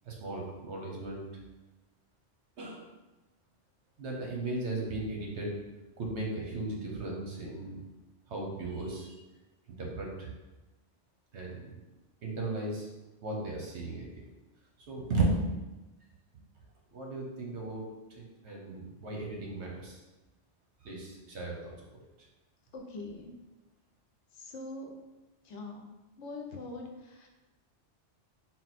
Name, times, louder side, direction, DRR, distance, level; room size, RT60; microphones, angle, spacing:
voice 1, 0.1-1.3 2.6-2.9 4.0-5.5 6.0-7.8 8.3-9.2 9.8-10.3 11.3-11.8 12.2-12.9 13.2-14.3 14.9-15.5 16.9-20.0 20.8-21.7, right 2 dB, 75° right, -1 dB, 1.2 m, -36 dB
voice 2, 22.7-23.3 24.3-24.9 25.4-25.9 26.2-27.3, left 2 dB, 80° left, 1 dB, 1.0 m, -43 dB
4.1 x 2.1 x 4.1 m, 1.1 s
omnidirectional pair, 1.2 m